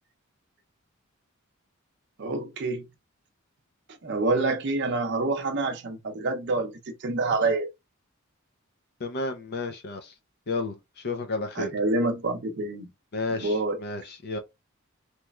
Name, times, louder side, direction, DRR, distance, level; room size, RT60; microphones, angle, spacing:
voice 1, 2.2-2.9 4.0-7.7 11.5-12.9 13.3-13.8, right 2 dB, 55° right, 0.6 m, -27 dB
voice 2, 9.0-10.1 10.5-10.7 11.0-11.7 13.1-14.4, left 3 dB, 50° left, 0.5 m, -31 dB
3.3 x 3.0 x 2.3 m
head